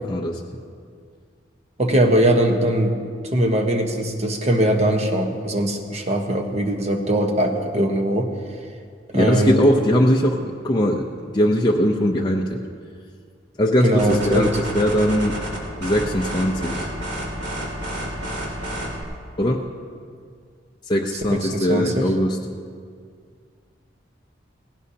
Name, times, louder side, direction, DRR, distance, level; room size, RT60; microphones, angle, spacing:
voice 1, 0.1-0.4 9.1-11.1 11.3-12.6 13.6-15.4 15.8-16.9 19.4-19.6 20.9-22.4, equal, 25° left, -1 dB, 0.6 m, -20 dB
voice 2, 1.8-2.9 3.3-8.3 9.1-9.6 13.8-14.5 21.3-22.1, right 1 dB, 35° right, 4 dB, 1.1 m, -21 dB
sound 1, 14.0-19.0, right 1 dB, 65° right, 2.6 m, -30 dB
18.0 x 16.5 x 2.8 m, 2.1 s
head